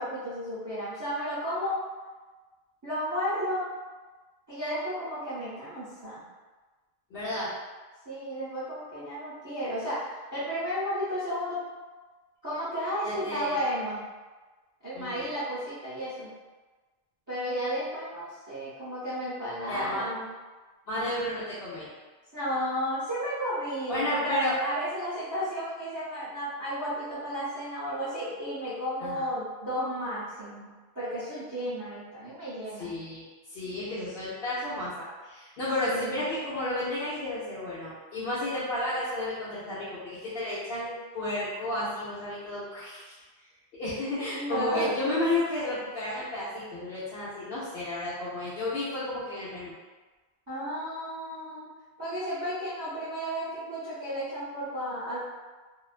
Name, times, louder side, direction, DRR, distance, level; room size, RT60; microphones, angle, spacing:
voice 1, 0.0-1.8 2.8-3.6 4.5-6.2 8.0-10.0 10.3-11.6 12.4-14.0 14.8-16.3 17.3-20.3 22.3-32.9 35.8-36.2 44.3-44.9 50.5-51.7 52.0-55.2, equal, 20° right, -12 dB, 0.6 m, -33 dB
voice 2, 7.1-7.5 13.0-13.6 14.9-15.3 19.7-20.1 20.9-21.9 23.9-24.6 29.0-29.2 32.8-33.2 33.5-43.0 43.7-49.7, left 1 dB, 70° left, -11 dB, 0.9 m, -32 dB
2.4 x 2.2 x 2.4 m, 1.3 s
omnidirectional pair, 1.1 m